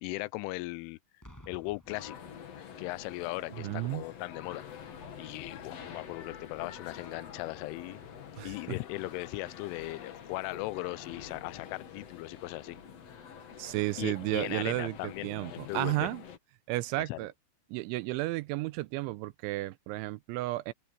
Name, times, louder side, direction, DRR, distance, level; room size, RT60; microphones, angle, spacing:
voice 1, 0.0-1.0 1.5-2.2 2.8-4.6 5.2-8.0 8.4-12.8 14.0-16.1 17.0-17.3, left 20 dB, 85° left, 3.1 m, -38 dB
Boom, 1.2-3.0 3.9-4.1, equal, 5° left, 6.1 m, -55 dB
sound 1, 1.9-16.4, left 8 dB, 60° left, 1.7 m, -47 dB
voice 2, 3.6-4.0 8.4-8.5 13.6-16.2 16.7-17.3 17.7-20.7, right 19 dB, 80° right, 3.0 m, -33 dB
open air
omnidirectional pair, 5.6 m